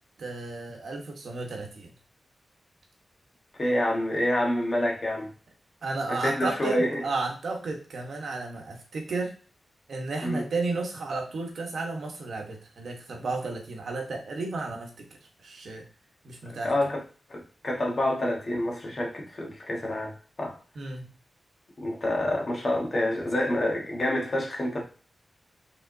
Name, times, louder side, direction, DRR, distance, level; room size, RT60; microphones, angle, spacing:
voice 1, 0.2-1.9 5.8-9.3 9.9-15.1 15.4-15.8 16.2-16.7 20.7-21.1, right 3 dB, 70° right, 1.1 m, -33 dB
voice 2, 3.6-5.3 6.1-7.0 10.2-10.5 16.4-17.0 17.3-20.6 21.8-24.8, left 1 dB, 35° left, 1.2 m, -27 dB
5.0 x 3.6 x 2.6 m
wide cardioid pair, 135°, 0 cm